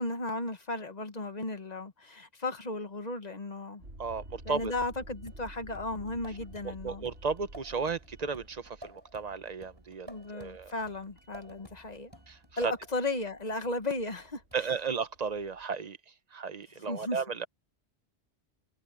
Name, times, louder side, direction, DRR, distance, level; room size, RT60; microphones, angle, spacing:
voice 1, 0.0-3.8 4.4-7.1 10.1-12.1 12.6-14.4 16.9-17.2, left 2 dB, 40° left, 1.3 m, -35 dB
sound 1, 3.8-15.6, right 1 dB, 85° right, 4.1 m, -52 dB
voice 2, 4.0-4.7 6.8-10.1 10.3-10.7 12.3-12.7 14.5-17.5, right 5 dB, 40° right, 0.9 m, -34 dB
sound 2, 5.3-13.1 14.5-14.6, equal, 25° right, 5.7 m, -54 dB
omnidirectional pair, 1.1 m